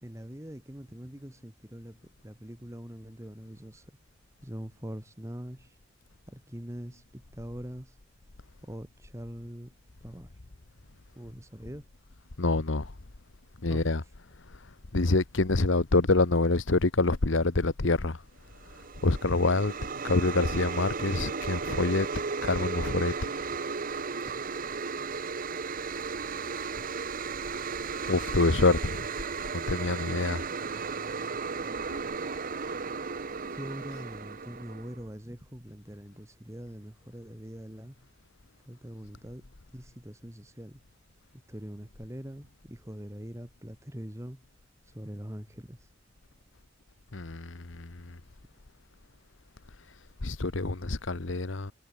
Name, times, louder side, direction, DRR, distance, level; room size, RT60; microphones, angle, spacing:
voice 1, 0.0-4.0 4.4-5.8 6.3-8.0 8.6-9.7 10.0-10.4 11.2-11.9 13.7-14.1 33.5-38.0 38.6-39.5 39.7-40.8 41.5-44.4 44.8-45.9, equal, 15° right, 2.0 m, -43 dB
voice 2, 12.4-12.9 13.6-14.0 14.9-18.2 19.0-19.7 20.0-22.1 22.4-23.3 28.1-29.1 29.5-30.5 31.9-32.0 47.1-48.2 50.2-51.7, left 3 dB, 80° left, 1.2 m, -26 dB
sound 1, 18.6-35.0, right 5 dB, 45° right, 0.9 m, -35 dB
head